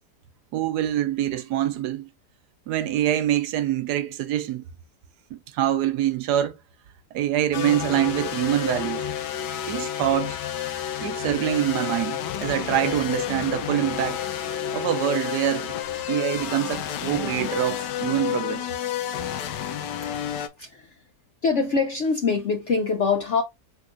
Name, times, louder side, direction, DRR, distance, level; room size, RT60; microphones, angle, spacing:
voice 1, 0.5-2.1 2.7-4.7 5.3-6.5 7.1-9.0 9.7-10.4 11.0-14.2 14.7-15.8 16.1-18.7, right 12 dB, 75° right, 1.1 m, -25 dB
sound 1, 7.5-20.5, left 10 dB, 80° left, 1.3 m, -30 dB
voice 2, 20.6-21.0 21.4-23.4, left 4 dB, 65° left, 0.7 m, -24 dB
4.8 x 3.8 x 2.5 m
omnidirectional pair, 1.8 m